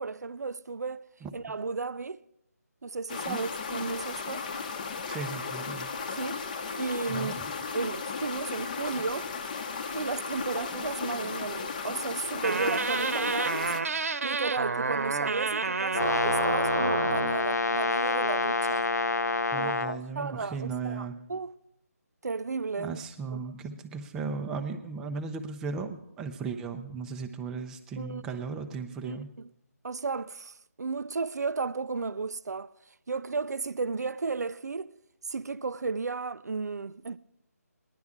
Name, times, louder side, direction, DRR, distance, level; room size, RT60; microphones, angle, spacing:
voice 1, 0.0-1.0 1.3-2.2 2.8-4.5 6.2-7.3 7.7-9.3 9.9-13.7 14.2-18.9 19.5-21.5 22.2-23.0 23.3-23.4 28.0-28.2 29.0-29.5 29.8-32.7 33.1-34.9 35.3-37.2, right 4 dB, 85° right, 0.4 m, -34 dB
sound 1, 3.1-13.8, left 5 dB, 30° left, 0.8 m, -35 dB
voice 2, 5.1-5.9 7.1-7.5 19.5-21.2 22.8-29.3, right 5 dB, 5° right, 0.5 m, -36 dB
sound 2, 12.4-17.4, right 4 dB, 60° right, 0.9 m, -30 dB
Brass instrument, 15.9-20.0, left 3 dB, 85° left, 0.6 m, -27 dB
19.5 x 11.0 x 3.6 m
figure-of-eight pair, 165°, 9 cm